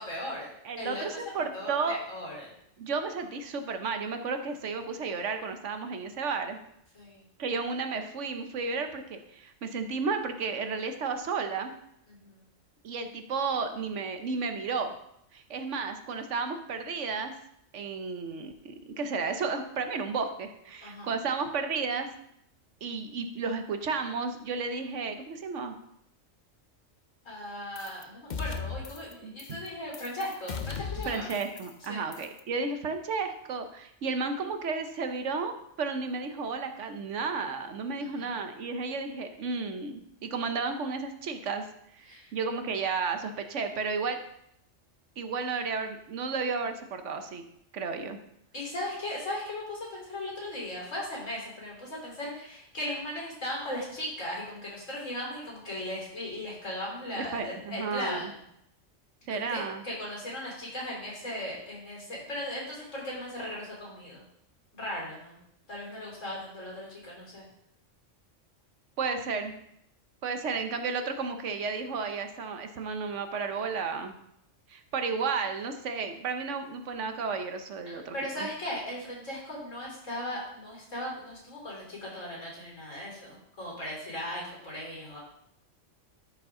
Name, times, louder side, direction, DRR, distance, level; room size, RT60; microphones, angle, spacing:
voice 1, 0.0-0.5 0.8-2.5 6.9-7.2 12.1-12.5 20.8-21.1 27.2-31.3 31.9-32.0 38.0-38.4 42.1-42.3 48.5-58.3 59.3-64.2 64.7-65.4 65.7-67.5 77.9-85.2, left 1 dB, 75° left, -4 dB, 3.9 m, -37 dB
voice 2, 0.6-2.0 2.8-6.6 7.4-11.7 12.8-14.9 15.3-17.3 17.7-22.1 22.8-25.8 29.2-29.3 31.0-41.6 41.9-44.2 45.2-47.4 47.7-48.2 57.2-58.3 59.3-59.8 69.0-69.5 70.2-74.2 74.7-78.5, right 4 dB, 70° right, 7 dB, 1.2 m, -33 dB
sound 1, 27.8-28.0 28.3-29.1 29.4-29.7 29.9-31.9 32.1-32.4, left 5 dB, 45° left, 0.7 m, -37 dB
13.5 x 5.6 x 3.7 m, 0.75 s
omnidirectional pair, 1.3 m